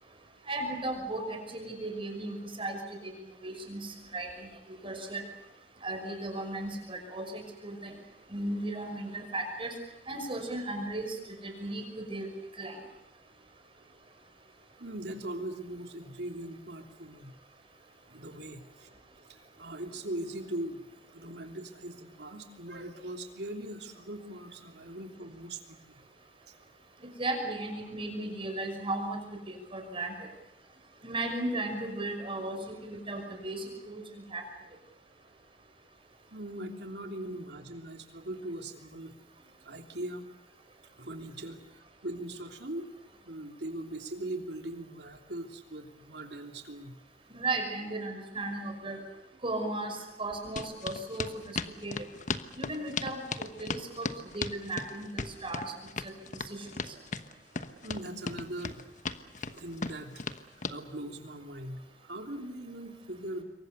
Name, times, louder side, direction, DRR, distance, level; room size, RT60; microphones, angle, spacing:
voice 1, 0.5-2.8 3.4-4.3 4.8-5.2 5.8-7.9 8.3-9.7 10.1-11.2 11.4-12.3 12.6-12.8 27.2-29.2 29.5-30.1 31.0-34.0 34.3-34.4 47.3-49.0 49.4-51.3 51.8-51.9 52.6-54.1 54.3-55.7, right 2 dB, 30° right, 4 dB, 5.8 m, -35 dB
voice 2, 14.8-17.3 18.1-18.9 19.3-26.0 36.3-39.1 39.6-40.2 41.0-41.6 42.0-42.9 43.3-47.0 57.8-58.8 59.5-60.2 60.7-63.4, right 1 dB, 70° right, 4 dB, 3.3 m, -40 dB
sound 1, 50.6-60.8, left 4 dB, 45° left, 1.2 m, -36 dB
27.0 x 23.0 x 6.9 m, 0.88 s
head